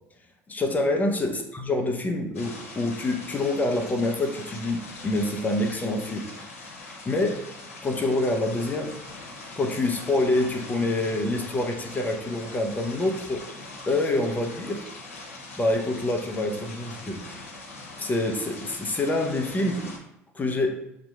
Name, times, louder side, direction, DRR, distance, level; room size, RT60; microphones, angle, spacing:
voice 1, 0.5-6.3 7.1-7.4 7.8-9.0 9.6-13.4 13.9-14.8 15.6-17.2 18.0-19.9 20.3-20.8, left 2 dB, 20° left, 3 dB, 0.7 m, -26 dB
sound 1, 2.3-20.0, left 2 dB, 85° left, 0.8 m, -42 dB
5.8 x 2.8 x 2.3 m, 0.83 s
hypercardioid pair, 70°, 7 cm